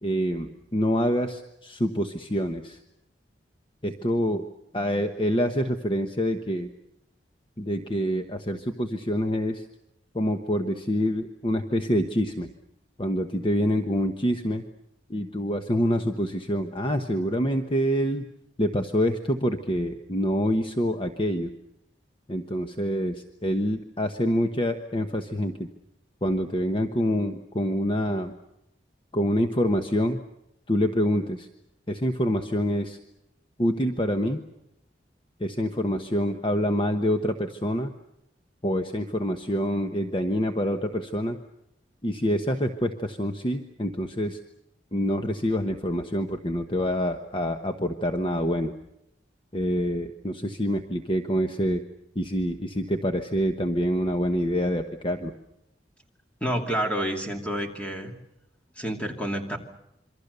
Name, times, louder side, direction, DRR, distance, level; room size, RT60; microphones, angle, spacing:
voice 1, 0.0-2.8 3.8-4.4 4.7-6.7 7.6-9.6 10.1-12.5 13.0-14.6 15.1-18.2 18.6-21.5 22.3-25.7 26.2-28.3 29.1-30.2 30.7-31.5 31.9-33.0 33.6-34.4 35.4-37.9 38.6-41.4 42.0-44.4 44.9-48.7 49.5-51.8 52.1-55.3, equal, 30° left, 6 dB, 1.1 m, -26 dB
voice 2, 56.4-58.1 58.8-59.6, equal, 5° left, 2 dB, 2.7 m, -29 dB
27.0 x 24.5 x 6.8 m, 0.85 s
head